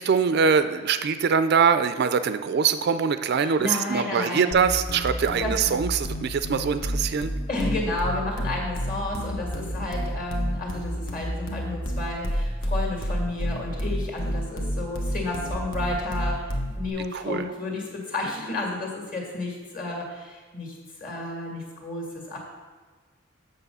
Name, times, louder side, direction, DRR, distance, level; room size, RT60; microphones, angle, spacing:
voice 1, 0.0-7.3 17.1-17.5, right 6 dB, 50° right, 11 dB, 0.3 m, -23 dB
voice 2, 3.4-4.5 5.4-5.6 7.5-16.5 16.7-22.4, left 2 dB, 40° left, 0 dB, 2.1 m, -31 dB
sound 1, 4.5-16.9, equal, 75° left, 1.2 m, -29 dB
8.1 x 6.7 x 5.5 m, 1.4 s
head